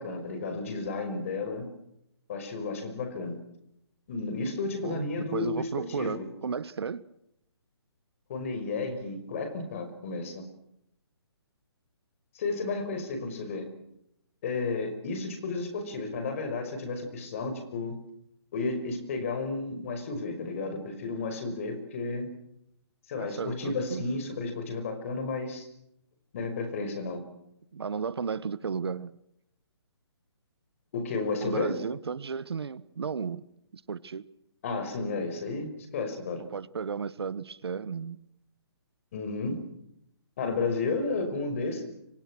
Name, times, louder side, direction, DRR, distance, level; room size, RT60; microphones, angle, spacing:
voice 1, 0.0-1.7 2.3-3.4 4.1-6.3 8.3-10.4 12.3-13.7 14.4-18.0 18.5-22.3 23.1-25.7 26.3-27.2 30.9-31.8 34.6-36.4 39.1-39.6 40.4-41.8, left 3 dB, 30° left, 7 dB, 5.6 m, -32 dB
voice 2, 4.8-7.0 23.2-24.0 27.7-29.2 31.4-33.4 33.7-34.3 36.5-38.2, right 6 dB, 70° right, 17 dB, 1.4 m, -34 dB
29.0 x 25.0 x 6.3 m, 0.77 s
hypercardioid pair, 175°, 14 cm